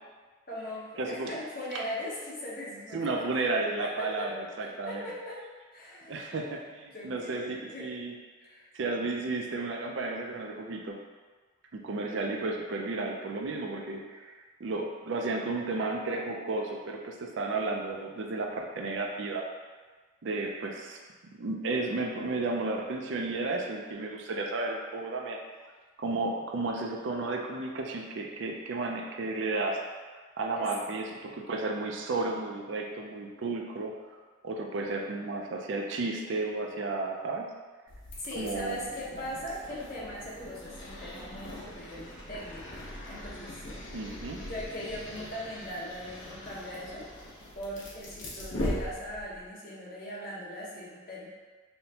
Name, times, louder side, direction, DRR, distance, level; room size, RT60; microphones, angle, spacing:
voice 1, 0.5-3.3 3.8-4.3 4.6-6.5 6.9-7.9 8.4-8.7 30.6-30.8 38.2-43.8 44.3-51.3, equal, 45° left, -6 dB, 0.9 m, -40 dB
voice 2, 1.0-1.3 1.7-1.8 2.9-5.0 6.1-8.1 8.7-11.0 11.7-19.5 20.2-21.0 21.3-25.4 26.0-29.8 30.4-33.9 34.4-37.5 38.3-38.8 43.9-44.4, right 3 dB, 70° right, 1 dB, 0.4 m, -33 dB
sound 1, 37.9-49.5, left 1 dB, 75° left, 0.9 m, -41 dB
5.5 x 2.1 x 2.8 m, 1.4 s
head